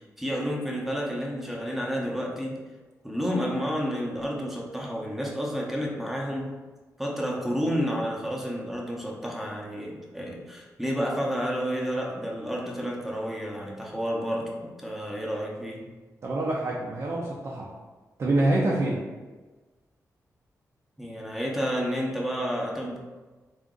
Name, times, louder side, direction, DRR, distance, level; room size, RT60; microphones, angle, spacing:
voice 1, 0.0-2.7 3.0-6.6 7.0-15.9 21.0-23.0, equal, 5° right, -2 dB, 0.7 m, -30 dB
voice 2, 16.2-17.7 18.2-19.0, right 2 dB, 50° right, -4 dB, 0.6 m, -26 dB
3.8 x 2.5 x 3.7 m, 1.3 s
wide cardioid pair, 105°, 6 cm